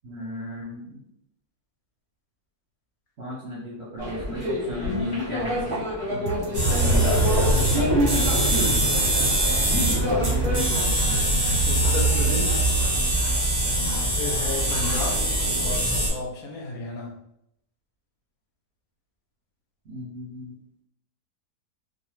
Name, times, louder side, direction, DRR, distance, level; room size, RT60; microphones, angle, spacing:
voice 1, 0.0-1.0 3.2-5.8 10.0-11.6 13.8-14.1 19.9-20.6, left 1 dB, 55° right, -5 dB, 0.7 m, -35 dB
sound 1, 4.0-10.6, equal, 25° left, 0.9 m, -28 dB
voice 2, 6.1-8.1 9.7-10.7 11.6-12.6 14.1-15.3 15.6-17.2, left 3 dB, 70° left, -1 dB, 1.0 m, -34 dB
sound 2, 6.3-11.8, right 4 dB, 85° right, 1.1 m, -34 dB
sound 3, 6.5-16.1, right 1 dB, 35° right, 0.3 m, -22 dB
2.5 x 2.2 x 3.0 m, 0.77 s
omnidirectional pair, 1.7 m